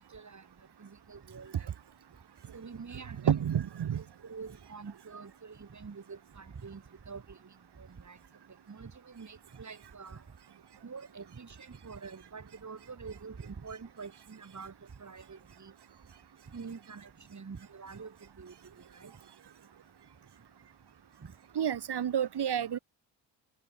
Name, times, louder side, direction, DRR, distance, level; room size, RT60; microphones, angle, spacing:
voice 1, 0.1-0.4 0.8-1.7 2.5-3.5 4.2-7.4 7.8-8.2 8.7-10.2 10.8-14.7 15.0-15.7 16.5-18.5 18.9-19.1, right 5 dB, 40° right, 7.1 m, -46 dB
voice 2, 3.2-4.0 21.5-22.8, right 9 dB, 60° right, 2.7 m, -29 dB
cardioid pair, 80°, 46 cm